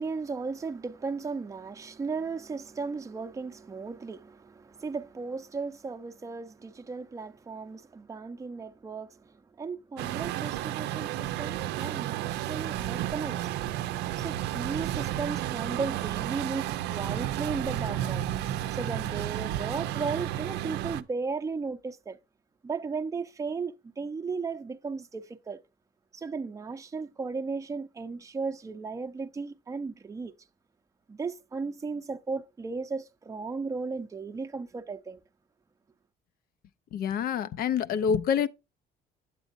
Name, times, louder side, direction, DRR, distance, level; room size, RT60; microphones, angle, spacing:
voice 1, 0.0-13.5 14.2-18.2 18.7-22.2 22.6-25.6 26.1-30.3 31.1-35.2, right 4 dB, 20° right, 0.6 m, -35 dB
Truck, 10.0-21.0, right 13 dB, 85° right, 0.6 m, -32 dB
voice 2, 36.9-38.5, left 7 dB, 60° left, 0.6 m, -27 dB
8.2 x 8.1 x 2.5 m
cardioid pair, 110°, 17 cm